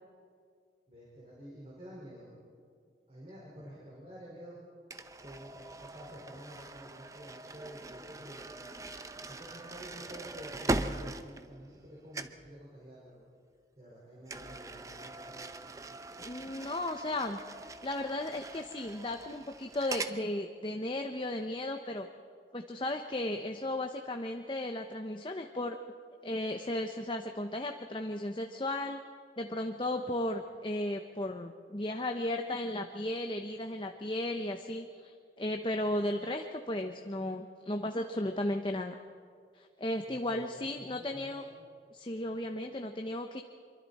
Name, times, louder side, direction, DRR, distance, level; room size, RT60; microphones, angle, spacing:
voice 1, 0.9-2.3 3.1-4.6 5.2-8.4 9.2-13.2 13.8-16.0 40.0-41.5, equal, 35° right, -5 dB, 5.0 m, -50 dB
sound 1, 4.9-11.9 12.1-12.5 14.3-20.2, right 2 dB, 20° right, 0.6 m, -41 dB
voice 2, 16.2-17.4 17.8-22.1 22.5-25.8 26.2-29.0 29.4-38.9 39.5-41.4 41.9-43.4, left 1 dB, 30° left, 5 dB, 0.8 m, -35 dB
26.0 x 23.5 x 4.2 m, 2.1 s
head